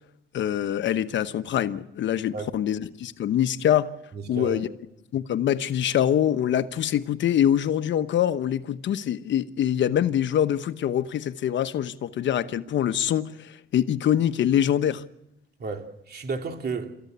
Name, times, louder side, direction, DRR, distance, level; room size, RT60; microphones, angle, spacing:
voice 1, 0.3-3.9 4.3-4.7 5.1-15.0, left 10 dB, 70° left, 1.1 m, -24 dB
voice 2, 4.1-4.6 15.6-16.9, right 4 dB, 55° right, 3.0 m, -32 dB
27.5 x 15.0 x 8.1 m
cardioid pair, 90°, 20 cm